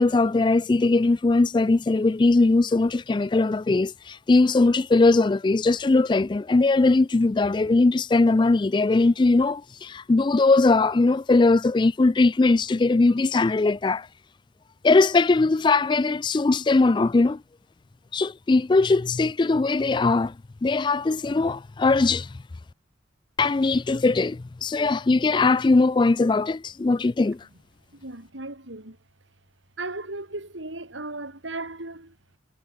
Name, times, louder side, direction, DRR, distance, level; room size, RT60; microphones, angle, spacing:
voice 1, 0.0-14.1 14.8-17.4 18.1-20.3 20.6-22.4 23.4-27.5, left 3 dB, 25° left, 0.3 m, -20 dB
voice 2, 28.0-29.0 29.8-32.1, right 2 dB, 85° right, 4.0 m, -36 dB
head